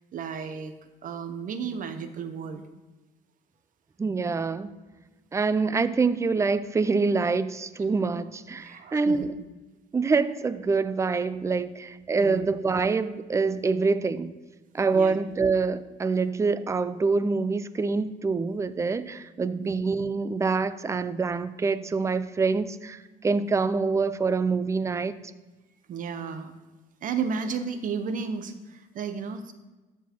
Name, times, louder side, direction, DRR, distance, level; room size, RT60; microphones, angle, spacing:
voice 1, 0.1-0.7 1.0-2.6 8.6-9.3 12.2-12.5 14.9-15.1 19.6-19.7 25.9-26.5 27.0-29.5, right 6 dB, 50° right, 0.8 m, -33 dB
voice 2, 4.0-4.7 5.3-9.4 9.9-14.3 14.7-25.1, right 4 dB, 15° right, 0.4 m, -26 dB
12.5 x 4.6 x 4.4 m
cardioid pair, 110°, 17 cm